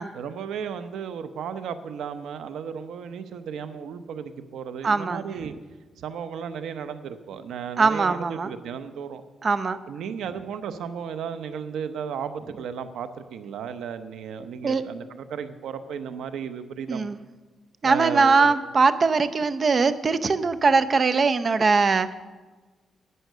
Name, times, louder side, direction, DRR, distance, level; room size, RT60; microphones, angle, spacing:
voice 1, 0.1-5.5 6.0-9.2 9.9-17.1 17.8-18.5, right 7 dB, 85° right, 10 dB, 0.8 m, -34 dB
voice 2, 4.8-5.3 7.8-8.5 9.4-9.8 14.6-14.8 16.9-17.2 17.8-22.1, right 4 dB, 40° right, 12 dB, 0.6 m, -21 dB
11.0 x 9.2 x 6.7 m, 1.3 s
cardioid pair, 110°, 0 cm